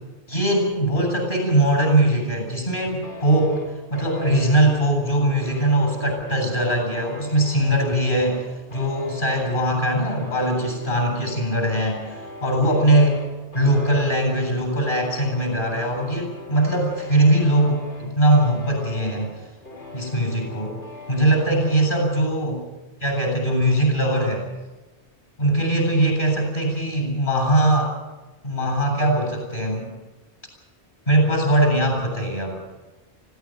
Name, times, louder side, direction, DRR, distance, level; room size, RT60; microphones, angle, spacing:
voice 1, 0.3-3.5 3.9-8.4 8.7-13.2 13.5-19.3 19.9-20.8 21.1-22.6 23.0-24.5 25.4-27.9 28.4-29.9 31.1-32.6, right 1 dB, 50° left, 2 dB, 8.0 m, -21 dB
sound 1, 3.0-22.2, left 3 dB, 80° left, 5.9 m, -41 dB
20.0 x 16.5 x 9.2 m, 1.2 s
omnidirectional pair, 1.1 m